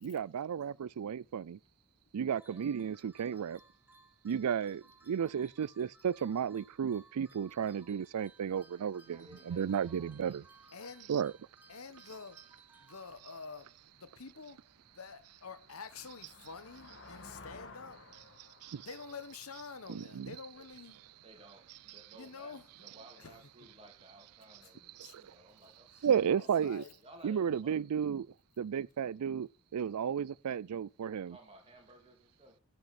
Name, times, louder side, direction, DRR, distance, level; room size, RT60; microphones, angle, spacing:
voice 1, 0.0-1.6 2.1-3.6 4.2-10.4 11.1-11.3 18.6-18.8 19.9-20.4 21.9-22.0 22.9-23.0 25.0-25.1 26.0-26.8 27.2-28.3 28.6-31.4, right 8 dB, 85° right, 0.4 m, -33 dB
voice 2, 2.3-2.6 8.8-10.5 20.5-20.7 21.2-26.5 27.0-27.9 31.0-32.6, right 1 dB, 25° right, 2.7 m, -58 dB
sound 1, 2.4-13.6, right 3 dB, 10° right, 1.3 m, -62 dB
voice 3, 10.7-11.1 11.7-12.4 12.8-14.6 14.9-18.0 18.8-21.0 22.1-22.7 23.2-23.4 24.6-24.7 25.0-25.1 25.9-26.1 26.4-26.9, left 5 dB, 70° left, 1.2 m, -48 dB
sound 2, 13.6-13.7 14.2-20.8, left 3 dB, 55° left, 1.9 m, -55 dB
10.5 x 5.9 x 5.8 m
head